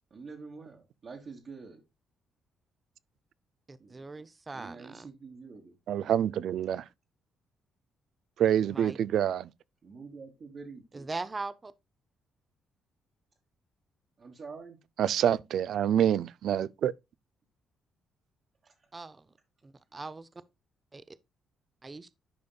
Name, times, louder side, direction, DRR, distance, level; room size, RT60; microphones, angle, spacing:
voice 1, 0.1-1.8 3.8-4.0 4.5-5.7 9.8-11.1 14.2-14.8 18.6-18.9, right 4 dB, 50° right, 1.3 m, -46 dB
voice 2, 3.7-5.1 8.7-9.0 10.9-11.7 18.9-19.3 19.6-20.3 20.9-21.2 21.8-22.1, right 3 dB, 25° right, 0.6 m, -40 dB
voice 3, 5.9-6.8 8.4-9.5 15.0-16.9, right 10 dB, 70° right, 0.3 m, -26 dB
11.0 x 5.1 x 2.3 m
cardioid pair, 90°, 0 cm